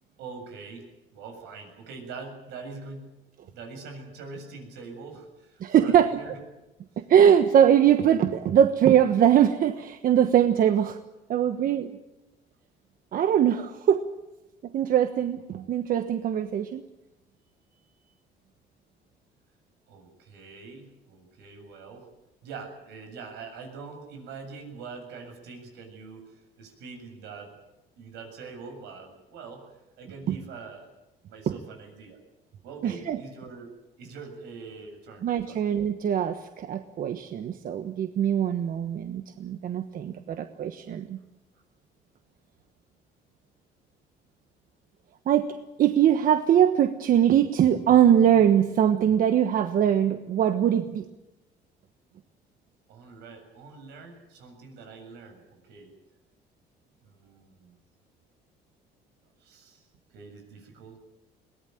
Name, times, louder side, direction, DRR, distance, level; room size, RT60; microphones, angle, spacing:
voice 1, 0.2-3.1 3.5-6.4 19.9-22.1 22.4-27.6 28.0-30.9 31.3-32.2 32.6-33.7 34.0-35.6 52.9-55.9 57.0-57.8 59.4-59.8 60.1-61.0, right 4 dB, 85° right, 4 dB, 7.4 m, -43 dB
voice 2, 5.6-6.2 7.1-11.0 11.3-12.0 13.1-14.1 14.7-16.8 30.3-30.4 32.8-33.2 35.2-41.2 45.3-51.0, right 9 dB, 55° right, 8 dB, 1.2 m, -22 dB
22.0 x 19.0 x 9.2 m, 1.0 s
cardioid pair, 110°, 17 cm